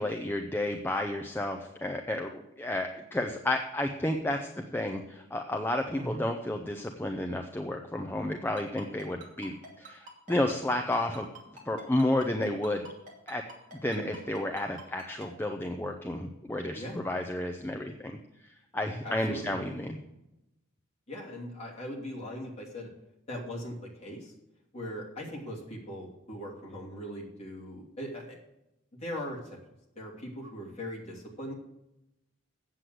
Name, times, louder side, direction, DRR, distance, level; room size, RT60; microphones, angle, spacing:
voice 1, 0.0-11.3 11.6-12.9 13.3-13.4 13.7-18.1 18.7-20.0, left 1 dB, 10° left, 4 dB, 0.6 m, -31 dB
Ringtone, 8.6-15.3, right 2 dB, 35° right, 2.5 m, -46 dB
voice 2, 19.0-19.6 21.1-22.9 23.3-24.3 24.7-28.4 29.0-29.4 30.0-31.5, equal, 30° left, -3 dB, 2.8 m, -40 dB
8.3 x 7.7 x 7.8 m, 0.89 s
head